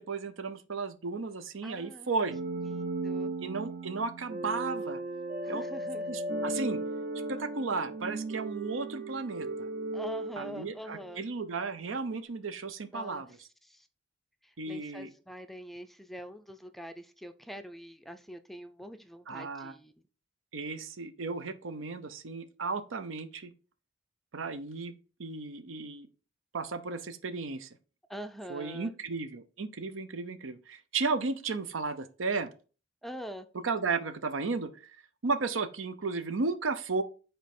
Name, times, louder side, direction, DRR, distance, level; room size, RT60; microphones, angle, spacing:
voice 1, 0.0-2.4 3.4-5.0 5.5-5.6 6.1-6.8 7.3-9.7 10.4-13.3 14.6-15.1 19.3-19.7 20.5-23.5 24.3-24.9 25.2-26.1 26.5-27.7 28.5-32.5 33.6-35.0 35.2-37.0, right 4 dB, 85° right, 11 dB, 0.7 m, -34 dB
voice 2, 1.6-2.2 2.6-3.3 5.4-6.1 9.9-11.2 12.9-13.3 13.6-13.9 14.4-19.9 28.1-28.9 33.0-33.5, equal, ahead, 9 dB, 0.4 m, -44 dB
sound 1, 2.3-11.2, right 2 dB, 55° right, 0.8 m, -36 dB
5.2 x 4.4 x 4.3 m, 0.36 s
head